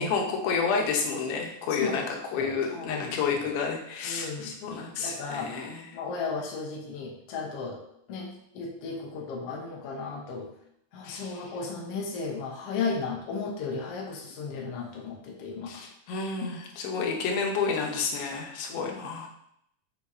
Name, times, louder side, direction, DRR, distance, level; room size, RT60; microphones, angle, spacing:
voice 1, 0.0-2.0 2.3-6.0 11.0-11.5 15.7-19.3, left 5 dB, 90° left, 1 dB, 2.9 m, -30 dB
voice 2, 1.7-2.0 2.4-3.2 4.0-5.5 5.9-7.8 8.1-10.5 10.9-15.8 16.4-16.5 18.7-18.9, left 4 dB, 70° left, -1 dB, 1.4 m, -35 dB
6.9 x 6.2 x 2.7 m, 0.73 s
omnidirectional pair, 4.2 m